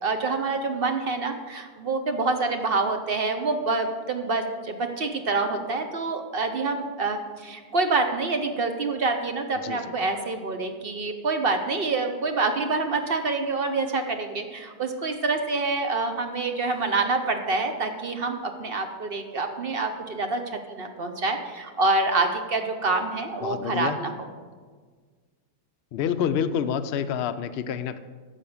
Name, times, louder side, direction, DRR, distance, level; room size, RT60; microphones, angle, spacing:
voice 1, 0.0-24.3, right 3 dB, 50° right, 5 dB, 0.7 m, -27 dB
voice 2, 23.4-24.0 25.9-28.0, left 8 dB, 75° left, 9 dB, 0.5 m, -28 dB
13.0 x 5.0 x 7.1 m, 1.5 s
omnidirectional pair, 1.7 m